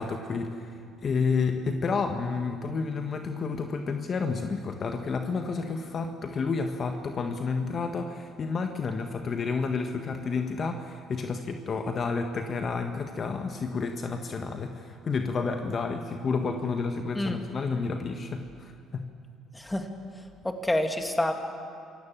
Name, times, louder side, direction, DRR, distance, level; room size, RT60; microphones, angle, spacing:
voice 1, 0.0-19.0, left 4 dB, 45° left, 5 dB, 1.5 m, -30 dB
voice 2, 19.5-19.9 20.4-21.3, left 1 dB, 10° left, 5 dB, 2.5 m, -27 dB
27.5 x 17.0 x 7.4 m, 2.3 s
hypercardioid pair, 65°, 0 cm